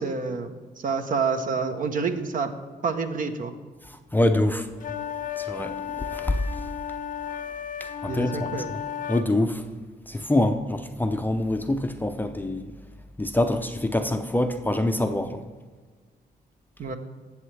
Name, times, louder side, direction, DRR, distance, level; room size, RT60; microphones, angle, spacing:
voice 1, 0.0-2.5 2.8-3.5 8.1-8.7 16.8-16.9, right 5 dB, 55° right, 7 dB, 1.0 m, -28 dB
voice 2, 4.1-4.7 5.4-6.4 8.0-8.3 9.1-9.6 10.1-12.7 13.2-15.4, left 1 dB, 10° left, 7 dB, 0.5 m, -25 dB
sound 1, 4.8-9.3, left 8 dB, 55° left, 0.6 m, -34 dB
19.0 x 7.2 x 3.3 m, 1.5 s
cardioid pair, 120°, 17 cm